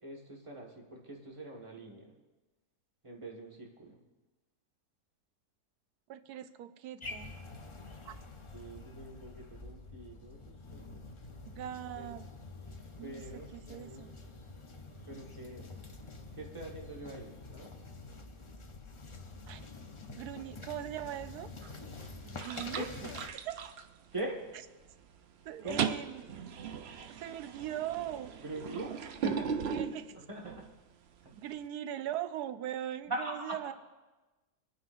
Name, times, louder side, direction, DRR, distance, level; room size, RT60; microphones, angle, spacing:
voice 1, 0.0-2.1 3.0-4.0 8.5-11.0 11.9-12.1 13.0-14.1 15.0-15.8 16.3-17.7 22.7-23.2 24.1-24.4 25.6-25.9 28.4-29.8 30.2-30.7 31.2-31.3 33.1-33.7, right 1 dB, 20° right, -1 dB, 1.6 m, -43 dB
voice 2, 6.1-7.3 8.0-8.1 11.5-12.3 13.0-14.1 19.5-19.6 20.1-21.5 22.2-22.9 23.4-23.7 25.5-26.2 27.1-28.3 29.7-30.1 31.3-33.7, right 11 dB, 90° right, 11 dB, 1.1 m, -40 dB
sound 1, 7.0-23.3, left 3 dB, 35° left, 0.4 m, -47 dB
sound 2, 21.6-22.0 22.4-24.5 24.9-25.2 25.4-30.7, right 7 dB, 65° right, 0.6 m, -38 dB
24.5 x 9.4 x 2.6 m, 1.2 s
omnidirectional pair, 1.6 m